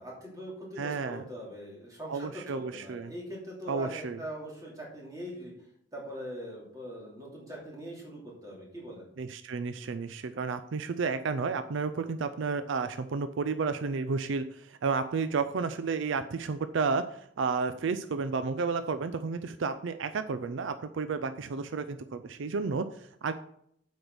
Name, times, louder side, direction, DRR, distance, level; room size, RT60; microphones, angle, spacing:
voice 1, 0.0-5.5 5.9-9.1, equal, 20° right, -3 dB, 2.7 m, -42 dB
voice 2, 0.8-1.3 2.1-3.1 3.7-4.2 9.2-23.4, right 4 dB, 70° right, 11 dB, 0.4 m, -32 dB
8.0 x 5.2 x 6.1 m, 0.71 s
head